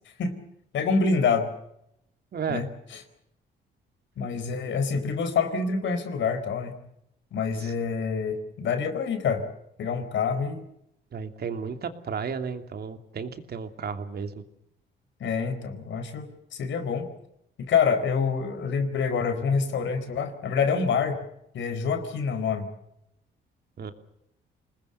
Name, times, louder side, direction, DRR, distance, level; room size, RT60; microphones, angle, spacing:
voice 1, 0.7-1.5 2.5-2.7 2.9-3.0 4.2-6.8 7.3-9.4 9.8-10.7 15.2-17.1 17.6-21.2 21.5-22.7, left 5 dB, 70° left, 9 dB, 4.4 m, -26 dB
voice 2, 2.3-2.6 7.6-7.7 11.1-14.4 23.8-23.9, right 6 dB, 55° right, 8 dB, 2.8 m, -33 dB
27.0 x 20.0 x 6.9 m, 0.79 s
cardioid pair, 90°, 20 cm